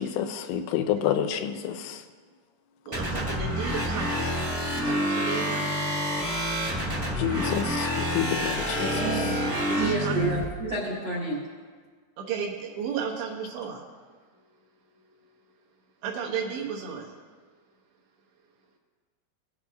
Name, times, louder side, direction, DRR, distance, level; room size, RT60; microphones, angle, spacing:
voice 1, 0.0-2.0 7.2-8.9, left 10 dB, 85° left, 7 dB, 2.8 m, -28 dB
sound 1, 2.9-10.4, equal, 25° right, 1.1 m, -28 dB
voice 2, 2.9-4.3 4.8-5.7 9.6-10.1 12.2-13.8 16.0-17.1, right 6 dB, 80° right, -1 dB, 3.4 m, -33 dB
voice 3, 8.8-9.3 9.8-11.4, right 3 dB, 55° right, -5 dB, 1.4 m, -29 dB
17.5 x 8.7 x 2.4 m, 1.5 s
omnidirectional pair, 5.1 m